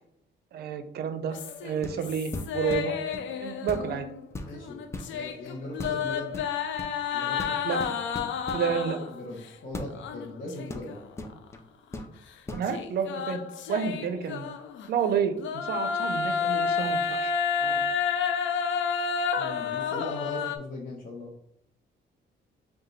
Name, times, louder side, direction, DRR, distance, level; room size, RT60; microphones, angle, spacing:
voice 1, 0.5-1.4 1.6-2.9 3.4-4.1 7.6-7.8 8.5-9.0 12.5-13.4 13.7-14.5 14.9-17.3 17.6-17.9, right 7 dB, 55° right, 9 dB, 0.5 m, -30 dB
sound 1, 1.3-4.2 4.5-9.2 9.9-11.0 11.3-11.4 12.7-14.9 15.4-20.6, left 6 dB, 75° left, 0.4 m, -30 dB
sound 2, 1.8-2.0 2.3-3.3 3.7-3.9 4.3-5.1 5.8-6.0 6.3-6.9 7.4-8.7 9.7-9.9 10.7-11.6 11.9-12.1 12.5-12.7, left 2 dB, 15° left, 0.4 m, -38 dB
voice 2, 4.4-4.8 5.1-6.4 7.1-7.5 8.6-11.0 19.4-21.3, left 2 dB, 45° left, -4 dB, 0.8 m, -39 dB
4.8 x 2.3 x 3.1 m, 0.71 s
cardioid pair, 130°, 20 cm